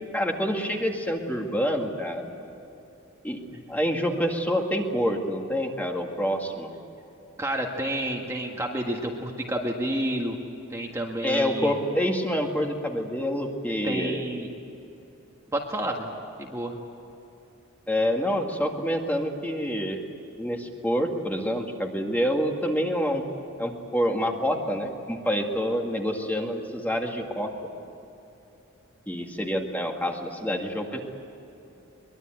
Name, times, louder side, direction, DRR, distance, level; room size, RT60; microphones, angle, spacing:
voice 1, 0.1-2.3 3.2-3.4 3.7-6.7 11.2-14.2 17.9-20.1 20.4-23.2 23.6-27.7 29.1-31.0, equal, 10° left, 2 dB, 2.1 m, -27 dB
voice 2, 7.4-10.4 10.7-11.7 13.8-14.5 15.5-16.1 16.4-16.7, right 1 dB, 15° right, 0 dB, 1.8 m, -30 dB
23.5 x 22.0 x 9.2 m, 2.9 s
head